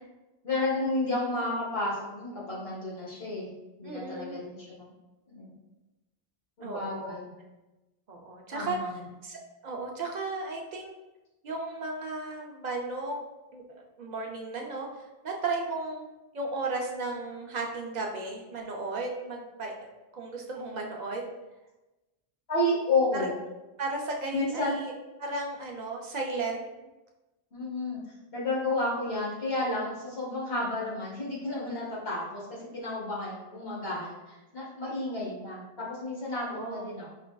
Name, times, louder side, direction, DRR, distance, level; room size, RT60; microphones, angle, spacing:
voice 1, 0.4-3.5 3.8-4.9 5.3-5.5 6.6-7.3 8.5-9.0 22.5-23.3 24.3-24.8 27.5-28.0 28.3-37.1, left 2 dB, 75° left, -7 dB, 1.6 m, -31 dB
voice 2, 3.8-4.4 6.6-7.2 8.1-8.8 9.2-10.9 11.4-13.2 13.5-13.6 14.0-16.1 16.3-19.9 20.1-21.4 23.2-23.3 23.8-24.9 25.2-26.9 33.7-33.9 36.5-36.9, right 3 dB, 55° right, 0 dB, 0.5 m, -35 dB
5.0 x 2.4 x 2.2 m, 1.0 s
omnidirectional pair, 1.1 m